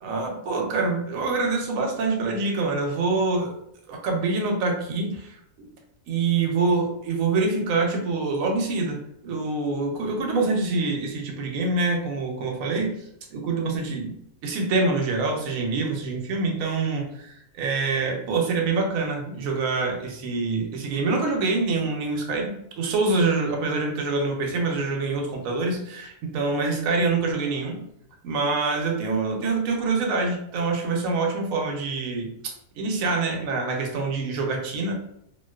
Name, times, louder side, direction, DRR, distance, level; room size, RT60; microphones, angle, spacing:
voice 1, 0.0-3.5 3.9-5.4 6.1-12.9 13.3-14.2 14.4-27.8 28.2-34.9, right 3 dB, 75° right, 2 dB, 0.9 m, -25 dB
2.4 x 2.2 x 2.3 m, 0.73 s
omnidirectional pair, 1.5 m